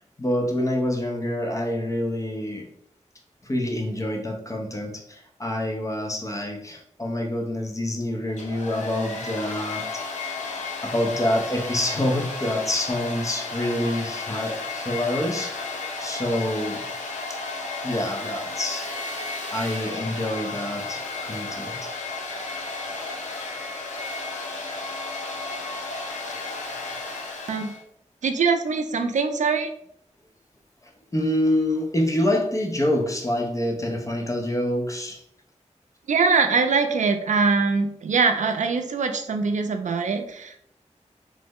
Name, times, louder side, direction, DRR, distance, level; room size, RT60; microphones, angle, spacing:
voice 1, 0.2-2.7 3.4-10.0 10.4-16.9 17.3-17.4 17.8-18.9 19.5-21.9 31.1-35.2, left 1 dB, 25° left, 2 dB, 0.6 m, -27 dB
Domestic sounds home sounds, 8.3-27.8, left 3 dB, 75° left, 0.5 m, -33 dB
voice 2, 28.2-29.7 36.1-40.6, right 4 dB, 80° right, 6 dB, 0.4 m, -23 dB
3.1 x 2.1 x 3.5 m, 0.70 s
wide cardioid pair, 75°, 12 cm